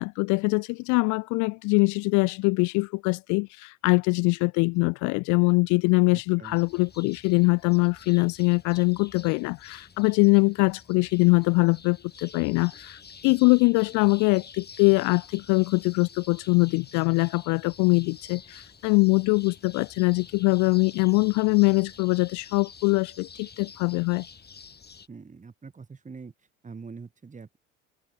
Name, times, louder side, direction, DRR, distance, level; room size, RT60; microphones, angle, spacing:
voice 1, 0.0-24.2, left 28 dB, 60° left, 0.5 m, -23 dB
voice 2, 6.1-6.6 25.1-26.3 26.6-27.6, right 5 dB, 20° right, 2.2 m, -44 dB
sound 1, 6.4-25.1, left 5 dB, 30° left, 7.9 m, -49 dB
hypercardioid pair, 75°, 35 cm